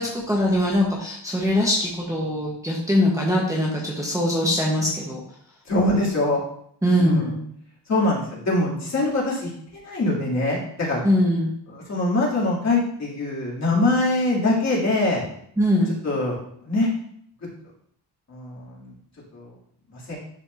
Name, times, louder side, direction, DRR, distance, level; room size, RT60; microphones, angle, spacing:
voice 1, 0.0-5.2 6.8-7.4 11.0-11.5 15.6-15.9, left 1 dB, 10° right, -5 dB, 1.1 m, -22 dB
voice 2, 5.6-6.4 7.0-7.3 7.9-11.0 11.7-15.2 16.0-16.9 18.3-18.9 19.3-19.5 19.9-20.2, left 2 dB, 40° left, -6 dB, 2.7 m, -23 dB
11.0 x 4.5 x 2.7 m, 0.69 s
wide cardioid pair, 145°, 42 cm